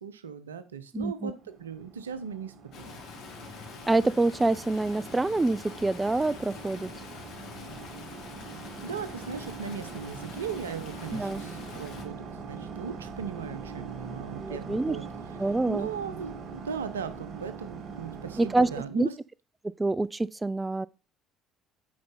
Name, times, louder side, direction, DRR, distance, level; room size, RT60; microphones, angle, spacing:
voice 1, 0.0-3.0 8.8-15.0 15.7-19.1, right 6 dB, 85° right, 0.8 m, -38 dB
voice 2, 0.9-1.3 3.9-6.9 11.1-11.4 14.4-15.0 15.4-15.9 18.4-18.7 18.9-19.1 19.6-20.9, right 2 dB, 15° right, 0.3 m, -26 dB
sound 1, 1.3-18.8, right 5 dB, 50° right, 1.8 m, -43 dB
Stream, 2.7-12.0, left 5 dB, 55° left, 1.9 m, -45 dB
8.7 x 5.1 x 4.0 m
hypercardioid pair, 60°, 0 cm